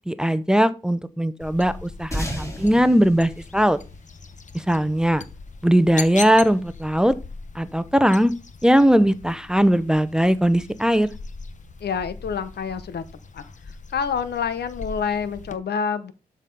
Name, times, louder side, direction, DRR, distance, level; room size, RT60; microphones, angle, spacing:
voice 1, 0.1-3.8 4.5-5.2 5.6-7.1 7.5-8.3 8.6-11.1, equal, 5° right, 13 dB, 0.7 m, -19 dB
sound 1, 1.4-15.6, left 4 dB, 50° left, 1.1 m, -40 dB
sound 2, 2.1-4.9, equal, 20° left, 4.1 m, -33 dB
voice 2, 11.8-13.0 13.3-13.4 13.9-16.1, left 6 dB, 85° left, 13 dB, 1.0 m, -27 dB
12.0 x 4.1 x 5.4 m, 0.33 s
cardioid pair, 85°, 17 cm